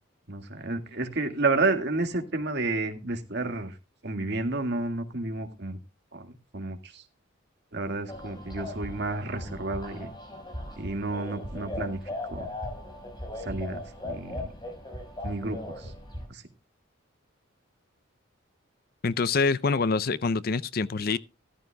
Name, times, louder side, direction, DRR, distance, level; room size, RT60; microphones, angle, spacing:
voice 1, 0.3-3.8 4.0-5.8 6.1-7.0 7.7-10.1 10.8-12.0 12.3-12.5 13.4-14.5 15.2-15.9 16.3-16.4, right 3 dB, 55° right, 1.9 m, -31 dB
sound 1, 8.1-16.3, left 1 dB, 20° left, 5.1 m, -38 dB
voice 2, 19.0-21.2, left 4 dB, 45° left, 0.5 m, -25 dB
14.5 x 14.0 x 2.3 m
head